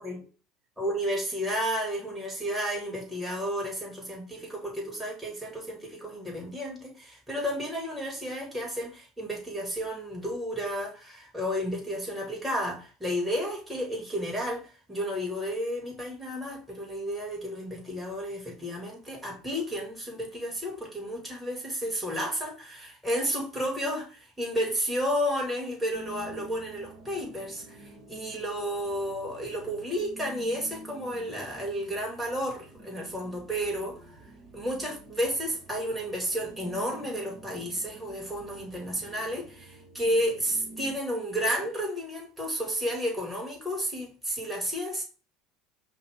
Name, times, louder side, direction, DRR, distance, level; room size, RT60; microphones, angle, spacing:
voice 1, 0.8-34.0 34.5-45.0, equal, 5° right, 2.5 m, -32 dB
sound 1, 25.9-41.0, right 2 dB, 25° right, 1.7 m, -49 dB
5.3 x 2.6 x 3.7 m
hypercardioid pair, 70°, 0 cm